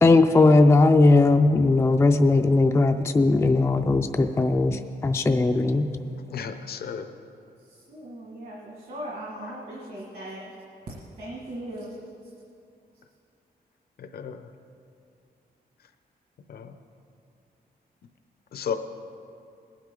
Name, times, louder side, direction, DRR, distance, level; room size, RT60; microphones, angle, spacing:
voice 1, 0.0-5.9, left 3 dB, 15° left, 5 dB, 0.3 m, -19 dB
voice 2, 6.3-7.1 9.4-9.5 14.0-14.5 16.5-16.7 18.5-18.7, left 7 dB, 70° left, 8 dB, 0.6 m, -33 dB
voice 3, 7.7-10.5 11.2-12.0 12.2-12.3, right 1 dB, 55° right, -5 dB, 1.9 m, -39 dB
19.5 x 9.1 x 3.8 m, 2.5 s
wide cardioid pair, 175°, 17 cm